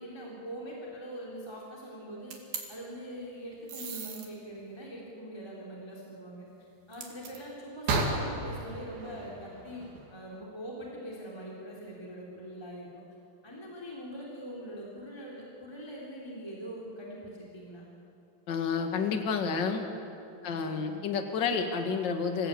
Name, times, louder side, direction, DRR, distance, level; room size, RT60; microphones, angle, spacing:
voice 1, 0.0-2.3 2.7-6.5 6.9-9.8 10.1-12.9 13.4-17.9 20.4-21.0, equal, 5° left, -4 dB, 3.1 m, -43 dB
sound 1, 2.3-2.6 3.7-4.3 6.9-7.4 7.9-10.1, right 3 dB, 75° right, 4.2 m, -34 dB
voice 2, 18.5-19.9 20.4-22.5, left 5 dB, 40° left, 5 dB, 1.8 m, -30 dB
27.0 x 16.0 x 8.5 m, 2.6 s
omnidirectional pair, 4.2 m